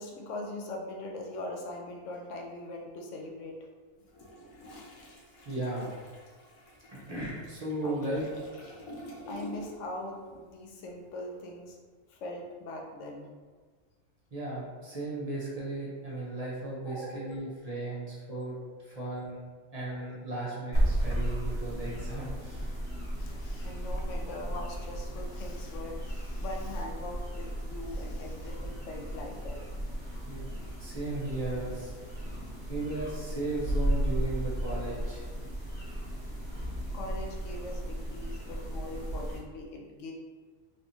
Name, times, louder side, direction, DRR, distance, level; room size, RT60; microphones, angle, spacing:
voice 1, 0.0-3.6 4.7-4.8 7.8-8.0 9.3-11.8 12.1-13.3 16.9-17.5 17.8-18.0 18.3-18.6 19.0-19.3 19.9-20.3 23.2-29.6 36.9-40.1, left 2 dB, 70° left, 0 dB, 0.9 m, -41 dB
Toilet flush, 4.0-10.0 10.2-10.5, equal, 85° left, 1.1 m, -48 dB
voice 2, 5.5-5.9 6.9-8.2 14.3-18.6 18.8-19.4 19.7-22.7 30.2-30.4 30.8-31.9 32.7-35.3, right 2 dB, 40° right, -6 dB, 0.6 m, -36 dB
sound 1, 20.7-39.4, right 1 dB, 50° left, 1.3 m, -34 dB
3.3 x 2.9 x 2.6 m, 1.5 s
omnidirectional pair, 1.4 m